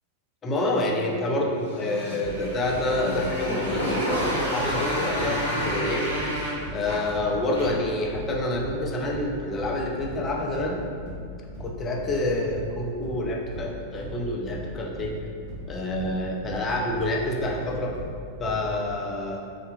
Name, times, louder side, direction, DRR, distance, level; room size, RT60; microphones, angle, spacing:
voice 1, 0.4-6.1 6.7-10.8 11.6-15.1 15.7-18.0 18.4-19.4, left 1 dB, 25° left, 0 dB, 0.3 m, -27 dB
Motorcycle, 1.6-7.9, equal, 90° right, 0.6 m, -30 dB
sound 1, 2.2-5.4 5.6-18.7, equal, 60° right, 0.9 m, -38 dB
2.6 x 2.1 x 2.4 m, 2.3 s
figure-of-eight pair, 90°, 0 cm